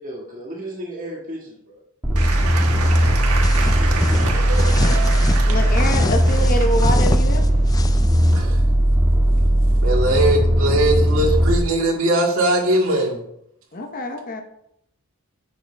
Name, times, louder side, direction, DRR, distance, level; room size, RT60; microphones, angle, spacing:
voice 1, 0.0-1.8 3.8-4.2, right 1 dB, 35° right, -3 dB, 1.8 m, -34 dB
sound 1, 2.0-11.6, equal, 10° right, 1.5 m, -17 dB
Applause / Crowd, 2.1-8.4, right 4 dB, 80° right, 1.4 m, -29 dB
sound 2, 3.4-5.4 5.8-8.4, left 2 dB, 15° left, 0.3 m, -28 dB
voice 2, 5.5-7.5 13.7-14.4, left 1 dB, 40° left, 4 dB, 0.8 m, -25 dB
voice 3, 9.8-13.2, right 1 dB, 60° right, -2 dB, 2.2 m, -20 dB
10.0 x 7.2 x 3.4 m, 0.76 s
head